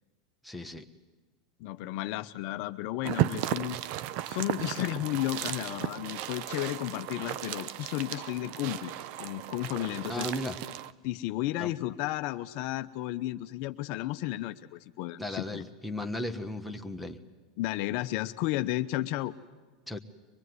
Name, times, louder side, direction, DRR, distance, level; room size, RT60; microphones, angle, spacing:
voice 1, 0.4-0.9 10.1-10.6 11.6-11.7 15.2-17.2 19.9-20.0, left 1 dB, ahead, 13 dB, 1.3 m, -36 dB
voice 2, 1.6-3.8 4.2-10.3 11.0-15.6 17.6-19.3, left 15 dB, 55° left, 9 dB, 0.8 m, -33 dB
sound 1, 3.0-10.9, right 13 dB, 55° right, 0.7 m, -35 dB
24.0 x 20.5 x 9.7 m, 1.3 s
hypercardioid pair, 120°, 3 cm